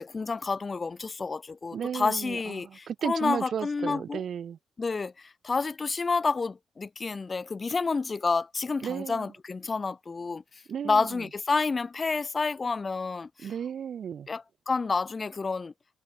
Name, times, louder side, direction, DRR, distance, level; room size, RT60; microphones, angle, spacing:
voice 1, 0.0-4.2 4.8-10.4 10.8-13.5 14.3-15.7, left 4 dB, 30° left, 7.5 m, -29 dB
voice 2, 1.7-4.6 8.8-9.3 10.7-11.2 13.4-14.3, right 8 dB, 55° right, 6.9 m, -34 dB
cardioid pair, 90°, 0 cm